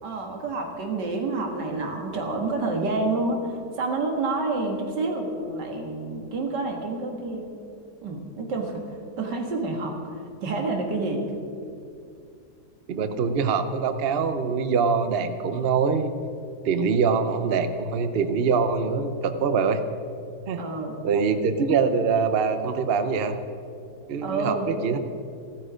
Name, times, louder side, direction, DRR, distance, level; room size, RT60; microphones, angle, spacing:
voice 1, 0.0-7.5 8.0-11.2 20.6-21.0 24.2-24.8, right 3 dB, 85° right, 2 dB, 2.3 m, -28 dB
voice 2, 12.9-16.1 16.6-19.8 20.5-20.6 21.0-23.4 24.1-25.0, right 5 dB, 50° right, 10 dB, 0.7 m, -24 dB
15.0 x 13.0 x 5.1 m, 2.5 s
omnidirectional pair, 1.8 m